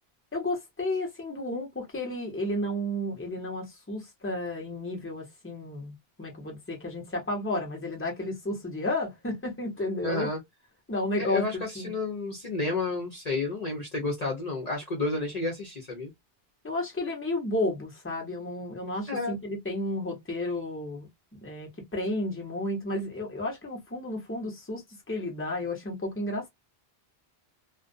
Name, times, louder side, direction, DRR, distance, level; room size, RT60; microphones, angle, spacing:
voice 1, 0.3-5.9 6.2-10.3 10.9-11.4 11.8-11.9 16.6-21.1 21.4-24.8 25.1-26.5, left 1 dB, 15° left, 0.9 m, -32 dB
voice 2, 10.0-10.4 11.2-16.1 19.1-19.4, left 3 dB, 45° left, 0.7 m, -31 dB
2.4 x 2.1 x 2.4 m
omnidirectional pair, 1.1 m